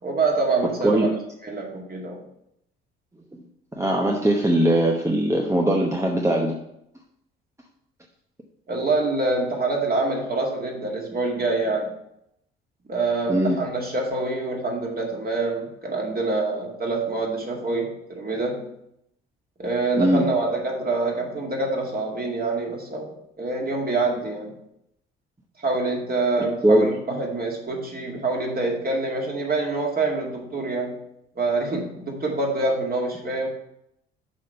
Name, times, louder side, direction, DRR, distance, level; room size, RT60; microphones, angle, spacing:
voice 1, 0.0-1.1 1.4-2.2 8.7-11.9 12.9-18.7 19.6-23.1 23.4-24.5 25.6-31.0 31.4-33.5, right 3 dB, 30° right, 0 dB, 2.2 m, -26 dB
voice 2, 3.8-6.6 13.3-13.6 20.0-20.3 26.6-26.9, right 1 dB, 10° right, 0 dB, 1.0 m, -20 dB
6.3 x 4.9 x 5.6 m, 0.78 s
figure-of-eight pair, 50°, 31 cm